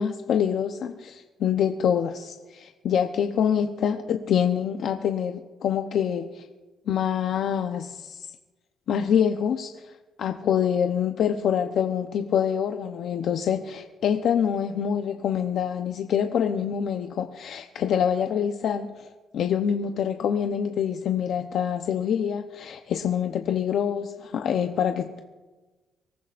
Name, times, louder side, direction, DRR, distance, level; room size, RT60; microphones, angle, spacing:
voice 1, 0.0-6.5 6.9-8.3 8.9-9.9 10.2-25.2, left 8 dB, 70° left, 5 dB, 0.8 m, -26 dB
24.5 x 14.5 x 2.6 m, 1.3 s
cardioid pair, 90°, 0 cm